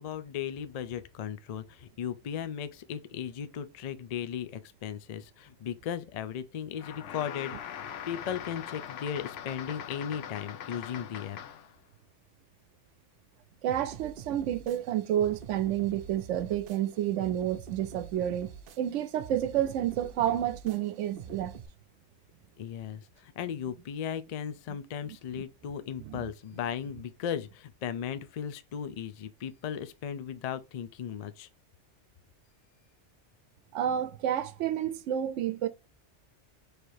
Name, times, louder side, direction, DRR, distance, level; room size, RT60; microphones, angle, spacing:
voice 1, 0.0-7.6 8.1-11.4 22.6-31.5, left 8 dB, 65° left, 0.4 m, -36 dB
sound 1, 6.8-11.8, left 9 dB, 80° left, 0.9 m, -41 dB
voice 2, 13.6-21.5 25.1-25.4 26.0-26.3 33.7-35.7, right 11 dB, 85° right, 0.9 m, -30 dB
sound 2, 13.7-21.7, right 7 dB, 60° right, 0.7 m, -46 dB
4.6 x 3.3 x 2.6 m
omnidirectional pair, 1.2 m